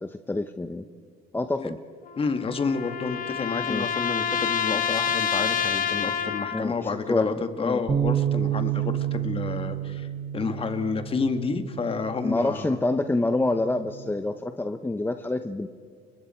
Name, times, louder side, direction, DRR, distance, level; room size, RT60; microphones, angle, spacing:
voice 1, 0.0-0.8 1.3-1.8 3.7-3.9 6.5-7.3 7.6-7.8 12.2-15.7, left 2 dB, 10° left, 8 dB, 0.8 m, -27 dB
sound 1, 2.1-6.8, left 7 dB, 50° left, 1.5 m, -28 dB
voice 2, 2.2-10.1 10.3-12.8, left 4 dB, 35° left, 8 dB, 2.0 m, -29 dB
Bass guitar, 7.9-14.1, right 10 dB, 30° right, 1.6 m, -30 dB
29.5 x 24.0 x 4.5 m, 2.2 s
cardioid pair, 110°, 17 cm